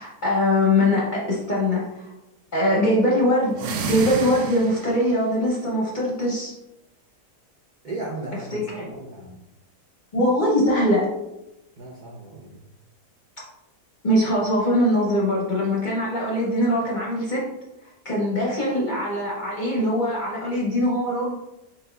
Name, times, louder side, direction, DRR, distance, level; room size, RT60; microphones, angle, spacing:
voice 1, 0.0-2.0 2.5-3.6 3.9-6.5 8.5-8.9 10.1-11.1 14.0-17.4 18.0-21.3, left 1 dB, 40° left, -4 dB, 0.7 m, -22 dB
sound 1, 3.5-5.1, right 4 dB, 80° right, 1.1 m, -30 dB
voice 2, 7.8-9.4 11.8-12.6, right 2 dB, 60° right, -5 dB, 0.4 m, -36 dB
4.4 x 3.8 x 2.2 m, 0.91 s
omnidirectional pair, 1.7 m